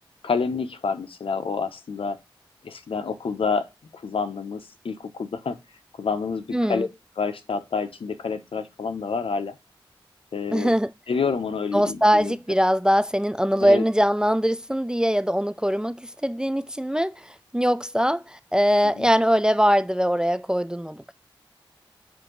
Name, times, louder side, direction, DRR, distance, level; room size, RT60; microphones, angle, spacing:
voice 1, 0.2-2.2 2.6-3.7 3.9-5.6 6.0-6.9 7.2-9.6 10.3-10.7 11.1-12.3 13.6-13.8 18.9-19.1, left 5 dB, 80° left, 0.9 m, -28 dB
voice 2, 6.5-6.9 10.5-10.9 11.7-21.1, equal, 10° right, 0.3 m, -22 dB
7.4 x 2.7 x 5.9 m
wide cardioid pair, 60°, 9 cm